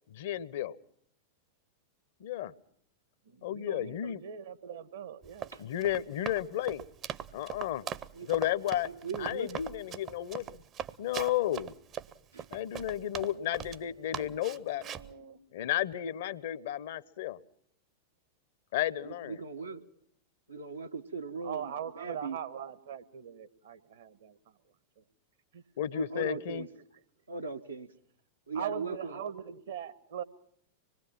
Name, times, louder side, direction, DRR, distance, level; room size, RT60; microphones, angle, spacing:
voice 1, 0.1-0.8 2.2-2.5 3.4-4.2 5.6-6.8 7.3-7.9 8.2-8.9 9.2-10.6 11.0-11.7 12.5-14.8 15.5-17.4 18.7-19.4 25.8-26.6, left 12 dB, 60° left, 0.8 m, -33 dB
voice 2, 3.2-5.5 14.5-15.4 21.4-24.6 25.0-25.1 25.5-25.6 25.9-26.0 28.5-30.2, right 8 dB, 65° right, 1.5 m, -41 dB
Run, 5.2-13.8 14.1-15.1, right 9 dB, 35° right, 0.8 m, -40 dB
voice 3, 8.9-9.6 12.3-12.5 12.7-13.0 19.0-19.9 20.5-22.4 25.9-26.7 27.3-27.9 28.5-29.1, right 4 dB, 85° right, 1.3 m, -39 dB
25.0 x 21.0 x 5.8 m
figure-of-eight pair, 95°, 0 cm